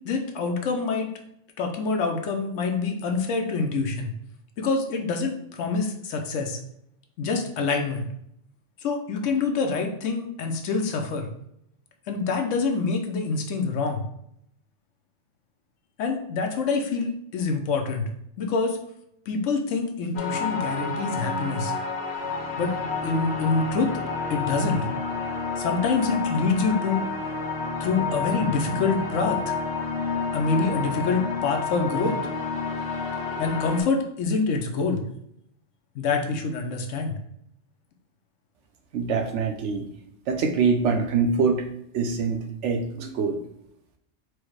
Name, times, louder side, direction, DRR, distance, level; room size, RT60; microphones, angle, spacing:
voice 1, 0.0-1.1 1.6-4.1 4.6-6.6 7.2-8.1 8.8-11.3 12.1-14.0 16.0-18.1 18.4-18.8 19.3-21.7 22.6-22.7 23.0-23.9 24.3-24.9 25.6-27.0 27.8-29.5 30.3-32.2 33.4-35.0 35.9-37.1, left 4 dB, 90° left, 4 dB, 1.0 m, -26 dB
sound 1, 20.2-33.8, left 4 dB, 65° left, 1.0 m, -30 dB
voice 2, 38.9-39.9 40.3-41.6 41.9-43.4, right 5 dB, 75° right, 5 dB, 0.9 m, -24 dB
4.8 x 2.1 x 4.5 m, 0.74 s
omnidirectional pair, 1.3 m